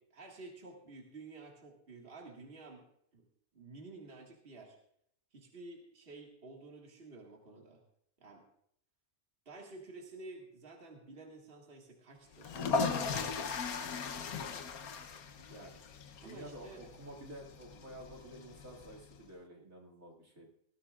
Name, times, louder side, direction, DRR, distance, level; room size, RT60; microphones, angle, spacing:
voice 1, 0.1-2.8 3.1-3.3 3.5-4.8 5.3-7.8 8.2-8.4 9.5-13.4 16.2-16.8, right 3 dB, 40° right, 0 dB, 2.1 m, -51 dB
sound 1, 12.4-19.2, left 5 dB, 90° left, 1.4 m, -38 dB
voice 2, 16.1-20.5, right 1 dB, 70° right, -3 dB, 2.8 m, -50 dB
19.5 x 14.5 x 2.4 m, 0.70 s
omnidirectional pair, 1.5 m